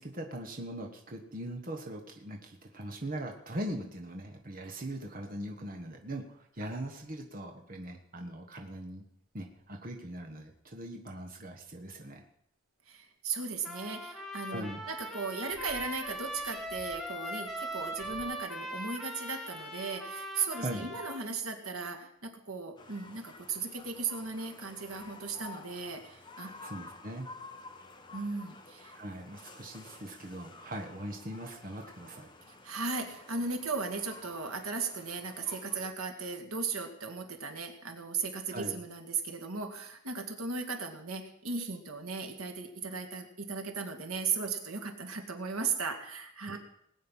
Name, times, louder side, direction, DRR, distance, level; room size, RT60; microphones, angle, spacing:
voice 1, 0.0-9.0 9.3-12.2 14.5-14.9 20.6-20.9 26.6-27.3 28.9-32.3 38.5-38.8, right 1 dB, 40° right, 2 dB, 1.4 m, -40 dB
sound 1, 4.4-4.6 5.0-5.1 6.6-6.7 8.8-8.9 9.4-9.7 11.6-11.7 13.3-13.4 15.3-18.2, equal, 70° right, 4.3 m, -58 dB
voice 2, 12.9-26.5 28.1-29.0 32.5-46.6, right 4 dB, 85° right, 5 dB, 2.1 m, -37 dB
Trumpet, 13.6-21.2, equal, ahead, 1.5 m, -40 dB
sound 2, 22.8-35.9, left 3 dB, 20° left, 1.2 m, -51 dB
19.5 x 9.1 x 5.6 m, 0.75 s
head